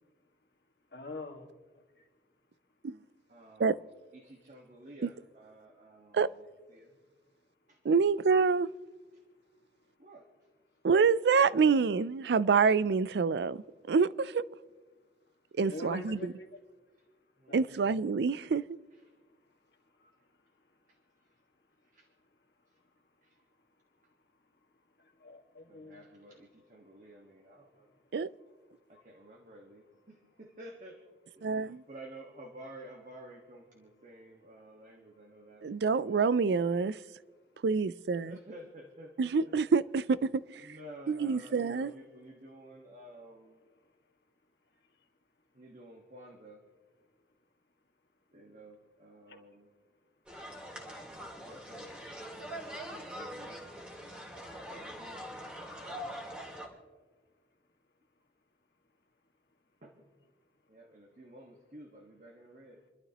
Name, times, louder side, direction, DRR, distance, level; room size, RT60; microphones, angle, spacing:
voice 1, 0.9-1.5 8.3-8.4 15.7-16.5 17.5-17.6 25.2-26.0 49.3-49.4, left 2 dB, 65° left, 1.9 m, -43 dB
voice 2, 3.3-6.4 6.7-7.0 7.7-7.8 10.0-10.3 16.1-16.2 17.4-17.8 20.9-21.0 21.9-22.1 23.2-23.4 25.7-27.9 28.9-31.0 31.4-36.3 38.1-39.5 40.6-43.6 45.5-46.6 48.3-49.7 51.3-52.0 52.9-56.4 59.8-60.0 60.7-62.8, right 1 dB, 45° right, 1.5 m, -52 dB
voice 3, 7.8-8.7 10.8-14.4 15.6-16.3 17.5-18.6 28.1-28.3 31.4-31.8 35.6-37.0 37.6-38.3 39.2-40.8 41.1-41.9, right 5 dB, 70° right, 0.4 m, -27 dB
sound 1, 50.3-56.7, equal, 5° right, 2.3 m, -43 dB
29.0 x 12.0 x 3.0 m
head